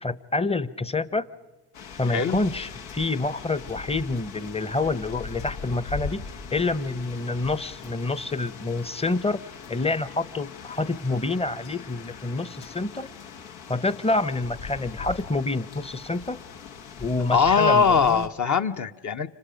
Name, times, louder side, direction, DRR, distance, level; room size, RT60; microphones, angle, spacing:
voice 1, 0.0-1.3 2.0-6.2 6.5-9.4 9.7-13.1 13.7-16.4 17.0-18.3, left 3 dB, 15° left, 16 dB, 0.8 m, -27 dB
sound 1, 1.7-18.3, left 5 dB, 80° left, 1.4 m, -41 dB
voice 2, 17.3-19.3, left 5 dB, 40° left, 7 dB, 1.0 m, -21 dB
30.0 x 26.0 x 5.2 m, 1.1 s
supercardioid pair, 75°, 46 cm